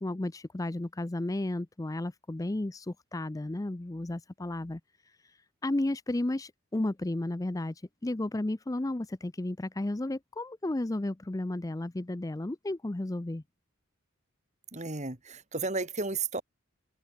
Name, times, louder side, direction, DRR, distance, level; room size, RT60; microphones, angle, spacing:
voice 1, 0.0-4.8 5.6-7.7 8.0-13.4, left 1 dB, 15° left, 0.5 m, -33 dB
voice 2, 14.7-16.4, right 3 dB, 35° right, 2.6 m, -33 dB
head